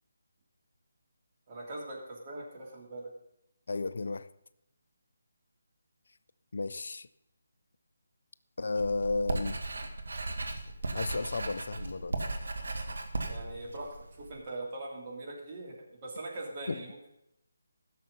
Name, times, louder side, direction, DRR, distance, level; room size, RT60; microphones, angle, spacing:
voice 1, 1.5-3.1 13.3-17.1, right 2 dB, 30° right, 3.2 m, -41 dB
voice 2, 3.7-4.3 6.5-7.1 8.6-9.6 10.9-12.2 16.7-16.8, left 3 dB, 60° left, 0.4 m, -33 dB
Writing, 8.7-14.4, right 2 dB, 70° right, 1.6 m, -36 dB
15.0 x 6.6 x 5.5 m
figure-of-eight pair, 150°, 0 cm